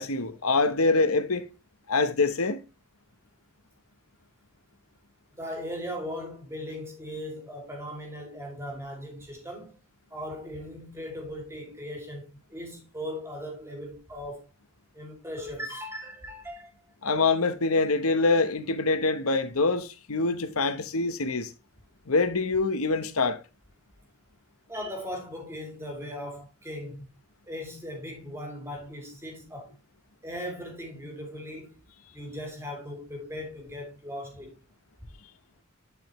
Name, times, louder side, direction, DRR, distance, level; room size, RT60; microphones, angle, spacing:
voice 1, 0.0-1.4 1.9-2.6 17.0-21.5 22.1-23.4, left 3 dB, 85° left, 1.0 m, -25 dB
voice 2, 5.4-9.7 10.1-14.4 14.9-16.7 17.1-17.2 24.7-27.0 27.5-29.7 30.2-31.8 32.1-34.6, equal, 10° right, 2.6 m, -38 dB
11.0 x 5.1 x 3.1 m
head